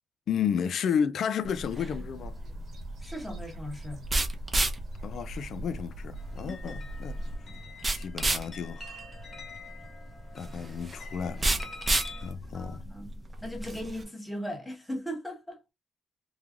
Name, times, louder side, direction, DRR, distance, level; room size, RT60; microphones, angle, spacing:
voice 1, 0.3-2.3 5.0-7.1 8.0-9.0 10.3-11.6 12.2-12.8, left 7 dB, 65° left, 0.4 m, -32 dB
sound 1, 1.4-14.0, right 2 dB, 25° right, 0.7 m, -33 dB
sound 2, 1.6-7.4, right 1 dB, 55° right, 1.1 m, -42 dB
voice 2, 3.0-4.0 6.4-6.8 12.5-15.6, equal, 10° left, 1.1 m, -38 dB
sound 3, 6.2-12.3, left 3 dB, 35° left, 1.6 m, -46 dB
3.2 x 2.2 x 2.4 m
cardioid pair, 90°, 0 cm